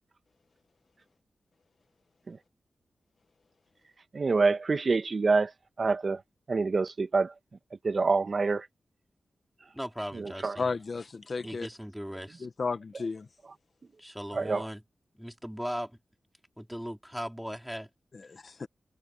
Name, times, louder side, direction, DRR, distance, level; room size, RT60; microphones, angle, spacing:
voice 1, 4.1-5.5 5.8-6.2 6.5-7.3 7.8-8.7 10.1-10.6 14.3-14.6, right 4 dB, 55° right, 1.6 m, -26 dB
voice 2, 9.7-10.7 11.4-12.5 14.0-14.8 15.1-16.0 16.6-17.9, equal, ahead, 4.6 m, -38 dB
voice 3, 10.6-11.7 12.4-13.3 18.1-18.7, left 4 dB, 55° left, 1.3 m, -34 dB
cardioid pair, 70°, 0 cm